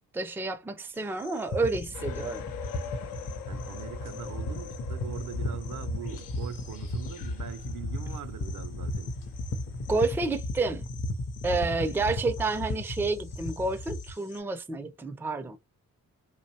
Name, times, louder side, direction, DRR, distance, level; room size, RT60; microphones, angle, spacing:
voice 1, 0.1-2.5 9.9-10.8 11.4-15.6, right 3 dB, 5° right, 0.4 m, -29 dB
sound 1, 0.9-14.4, left 6 dB, 60° left, 0.9 m, -53 dB
sound 2, 1.5-14.1, left 1 dB, 40° left, 0.6 m, -35 dB
sound 3, 1.9-10.3, left 8 dB, 80° left, 0.5 m, -45 dB
voice 2, 3.5-9.2 12.0-12.2, right 8 dB, 60° right, 0.5 m, -41 dB
2.6 x 2.0 x 2.7 m
supercardioid pair, 45°, 35 cm